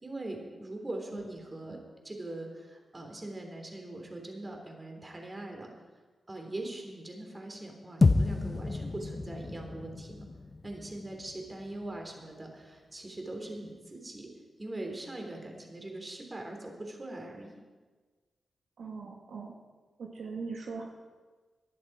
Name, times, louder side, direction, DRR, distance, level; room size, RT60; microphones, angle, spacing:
voice 1, 0.0-5.7 6.3-10.3 10.6-14.3 14.6-17.6, right 2 dB, 30° right, 2 dB, 3.4 m, -41 dB
sound 1, 8.0-12.4, left 3 dB, 40° left, 0.8 m, -30 dB
voice 2, 18.8-19.5 20.0-20.9, right 4 dB, 80° right, 1 dB, 1.6 m, -40 dB
17.5 x 11.5 x 4.8 m, 1.4 s
cardioid pair, 65°, 0 cm